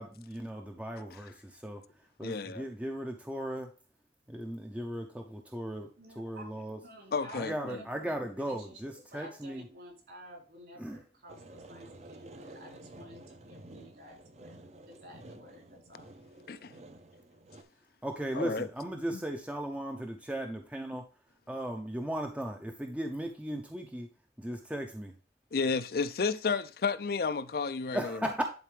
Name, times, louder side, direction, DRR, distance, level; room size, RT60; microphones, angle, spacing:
voice 1, 0.0-1.8 2.2-3.7 4.3-5.9 6.2-6.8 7.3-9.6 10.8-11.0 18.0-21.0 21.5-24.1 24.4-25.1 27.9-28.4, right 1 dB, 5° right, 0.6 m, -37 dB
voice 2, 2.2-2.6 7.1-7.8 16.5-16.8 18.3-18.7 19.1-19.2 25.5-28.2, left 4 dB, 55° left, 0.5 m, -32 dB
voice 3, 6.0-8.8 9.1-14.6 14.9-16.1, equal, 60° right, 3.7 m, -51 dB
sound 1, 11.3-17.6, right 1 dB, 40° right, 0.7 m, -51 dB
10.5 x 4.3 x 3.3 m
head